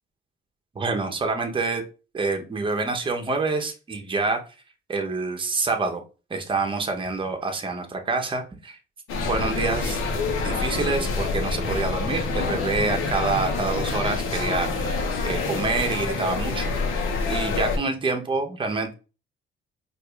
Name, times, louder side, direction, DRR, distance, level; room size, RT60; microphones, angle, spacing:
voice 1, 0.7-1.8 2.1-4.4 4.9-6.0 6.3-8.8 9.3-10.0 10.4-16.7 17.3-18.9, right 3 dB, 25° right, 4 dB, 0.8 m, -27 dB
sound 1, 9.1-17.8, left 4 dB, 90° left, 0.9 m, -27 dB
4.7 x 2.5 x 2.3 m, 0.33 s
cardioid pair, 105°, 21 cm